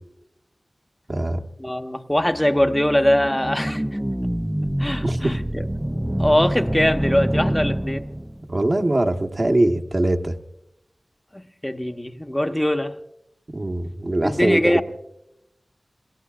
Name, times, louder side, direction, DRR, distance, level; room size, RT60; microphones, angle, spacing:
voice 1, 1.1-1.4 5.0-5.3 8.5-10.3 13.5-14.8, right 1 dB, 50° right, 1.3 m, -22 dB
voice 2, 1.6-3.8 4.8-5.6 6.2-8.1 11.3-13.0 14.2-14.8, left 1 dB, 15° left, 0.9 m, -22 dB
sound 1, 2.2-8.5, equal, 10° right, 0.5 m, -26 dB
28.0 x 20.5 x 2.5 m
wide cardioid pair, 45°, 0 cm